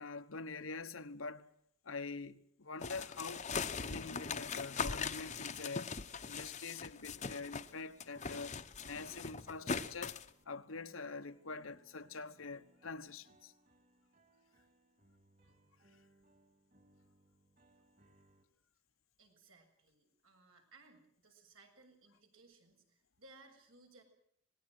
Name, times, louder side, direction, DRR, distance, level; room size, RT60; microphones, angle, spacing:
voice 1, 0.0-1.5 1.8-3.5 3.8-6.0 6.3-8.5 8.8-10.2 10.5-13.5 15.9-16.0, left 4 dB, 85° left, 1.2 m, -45 dB
sound 1, 2.8-7.7 8.0-10.3, left 5 dB, 35° left, 0.9 m, -41 dB
sound 2, 4.7-18.4, right 2 dB, 45° right, 2.7 m, -68 dB
voice 2, 19.2-24.0, right 3 dB, 85° right, 7.0 m, -62 dB
26.5 x 19.5 x 6.2 m
head